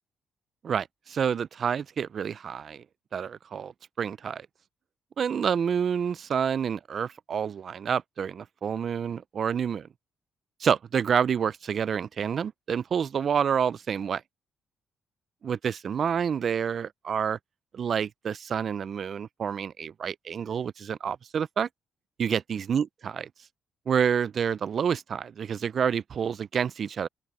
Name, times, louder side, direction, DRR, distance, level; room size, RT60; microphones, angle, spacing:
voice 1, 0.6-2.8 3.1-4.5 5.2-9.9 10.6-14.2 15.4-17.4 17.7-21.7 22.2-22.8 23.9-27.1, right 7 dB, 55° right, 0.4 m, -28 dB
open air
cardioid pair, 90°, 0 cm